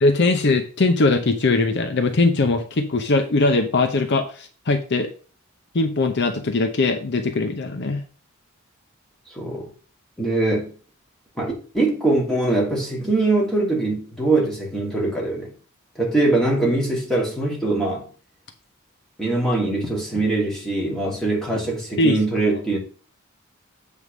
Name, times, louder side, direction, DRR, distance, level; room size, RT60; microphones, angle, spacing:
voice 1, 0.0-5.1 5.7-8.0 22.0-22.5, left 3 dB, 55° left, 0.7 m, -20 dB
voice 2, 9.3-9.7 10.2-10.7 11.4-15.5 16.0-18.1 19.2-22.8, right 2 dB, ahead, 2.6 m, -22 dB
8.1 x 3.6 x 6.0 m
head